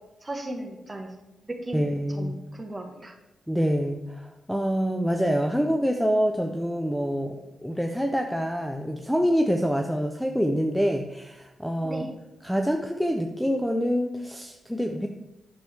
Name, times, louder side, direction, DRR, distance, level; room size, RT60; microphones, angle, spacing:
voice 1, 0.2-1.1 1.4-3.1 11.8-12.1, right 1 dB, 20° right, 2 dB, 1.5 m, -36 dB
voice 2, 1.7-2.4 3.5-12.0 12.4-15.1, equal, ahead, 4 dB, 0.6 m, -26 dB
10.5 x 6.9 x 3.4 m, 0.97 s
cardioid pair, 95°, 0 cm